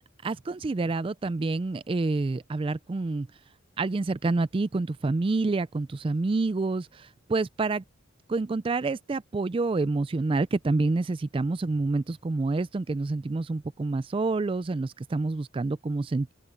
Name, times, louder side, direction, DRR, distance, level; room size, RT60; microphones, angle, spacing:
voice 1, 0.2-3.3 3.8-7.8 8.3-16.3, right 3 dB, 25° right, 0.3 m, -28 dB
open air
head